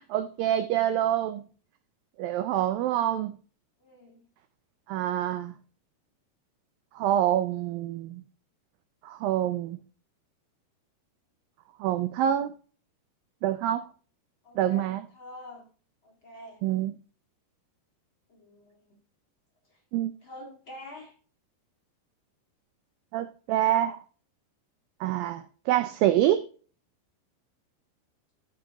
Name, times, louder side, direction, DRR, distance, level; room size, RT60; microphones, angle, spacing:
voice 1, 0.0-1.4 2.2-3.3 4.9-5.5 7.0-8.2 9.0-9.8 11.8-12.5 13.4-13.9 14.6-15.0 16.6-16.9 19.9-20.1 23.1-24.0 25.0-26.5, right 12 dB, 90° right, 2.0 m, -26 dB
voice 2, 3.8-4.3 14.4-15.7 16.0-16.6 18.3-19.0 19.7-19.8 20.2-21.2, left 1 dB, 40° left, 1.9 m, -46 dB
13.5 x 6.8 x 3.5 m
omnidirectional pair, 4.7 m